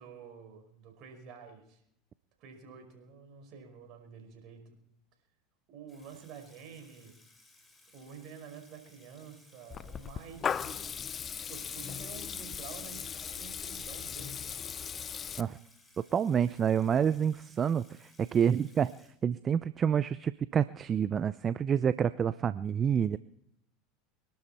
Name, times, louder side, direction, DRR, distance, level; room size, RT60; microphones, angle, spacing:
voice 1, 0.0-1.8 2.4-4.9 5.7-7.2 7.9-10.9 11.5-14.8, right 7 dB, 55° right, 4 dB, 5.2 m, -49 dB
Water tap faucet / Sink (filling or washing), 5.9-19.6, left 2 dB, 15° left, 4.9 m, -62 dB
Water tap faucet / Liquid, 9.7-15.4, left 7 dB, 30° left, 0.6 m, -38 dB
voice 2, 16.1-18.9 19.2-23.2, right 8 dB, 35° right, 15 dB, 0.6 m, -28 dB
24.5 x 12.0 x 4.4 m, 0.75 s
hypercardioid pair, 85°, 0 cm